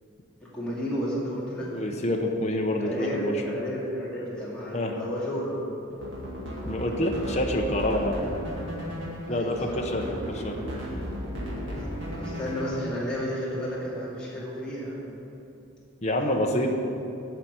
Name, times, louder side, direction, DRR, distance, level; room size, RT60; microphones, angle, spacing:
voice 1, 0.4-1.9 2.8-5.6 9.3-10.5 12.1-15.0 16.2-16.7, equal, 5° left, -8 dB, 2.4 m, -33 dB
voice 2, 1.6-3.4 4.7-4.9 6.6-8.2 9.2-10.6 16.0-16.7, left 1 dB, 30° left, 1 dB, 0.9 m, -27 dB
sound 1, 5.9-13.0, equal, 60° right, 2.1 m, -35 dB
10.5 x 5.8 x 8.1 m, 2.7 s
head